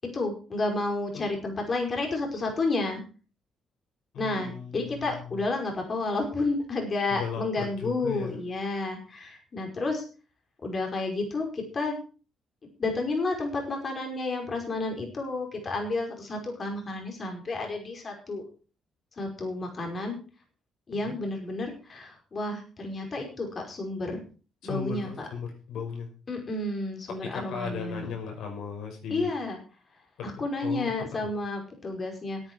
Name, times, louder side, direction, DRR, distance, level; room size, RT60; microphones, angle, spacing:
voice 1, 0.1-3.0 4.2-10.0 10.6-11.9 12.8-18.4 19.2-20.2 20.9-24.2 24.6-25.3 26.3-28.2 29.1-29.6 30.2-32.4, left 2 dB, 40° left, 2 dB, 5.2 m, -31 dB
voice 2, 4.1-5.4 7.1-8.4 20.9-21.2 24.6-26.1 27.1-29.3 30.2-30.9, left 6 dB, 80° left, 2 dB, 5.8 m, -37 dB
18.5 x 9.2 x 4.7 m, 0.37 s
cardioid pair, 90°, 0 cm